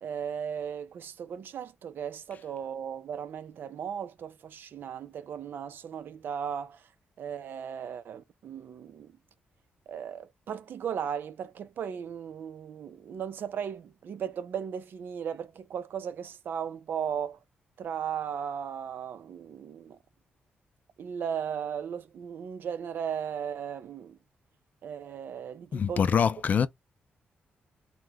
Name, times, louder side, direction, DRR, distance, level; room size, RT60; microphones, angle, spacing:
voice 1, 0.0-6.9 7.2-9.2 9.9-17.4 17.8-20.0 21.0-24.2 24.8-26.1, right 8 dB, 65° right, 0.4 m, -36 dB
voice 2, 25.7-26.7, left 7 dB, 45° left, 0.4 m, -24 dB
2.8 x 2.2 x 3.4 m
wide cardioid pair, 140°, 4 cm